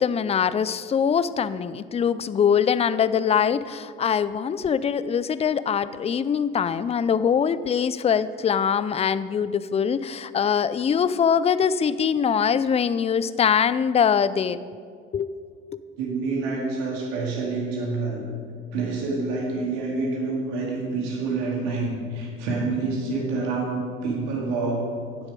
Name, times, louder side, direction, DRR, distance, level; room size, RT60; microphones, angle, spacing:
voice 1, 0.0-14.6 15.1-15.3 15.7-15.8, left 7 dB, 20° left, 16 dB, 0.4 m, -23 dB
voice 2, 16.0-18.2 18.7-25.0, right 3 dB, 80° right, -2 dB, 2.3 m, -27 dB
9.9 x 7.6 x 5.2 m, 2.1 s
hypercardioid pair, 65°, 30 cm